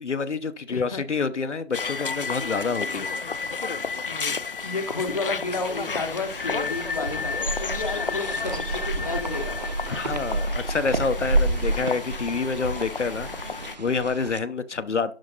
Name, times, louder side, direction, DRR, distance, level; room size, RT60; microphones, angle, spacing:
voice 1, 0.0-3.5 9.9-15.2, left 4 dB, 75° left, 0.9 m, -28 dB
voice 2, 0.7-1.0 4.1-9.8, left 3 dB, 30° left, 0.9 m, -32 dB
sound 1, 1.7-13.8, left 5 dB, 50° left, 0.5 m, -32 dB
sound 2, 5.4-14.4, right 2 dB, 35° right, 0.7 m, -30 dB
11.5 x 4.9 x 4.0 m
figure-of-eight pair, 165°, 36 cm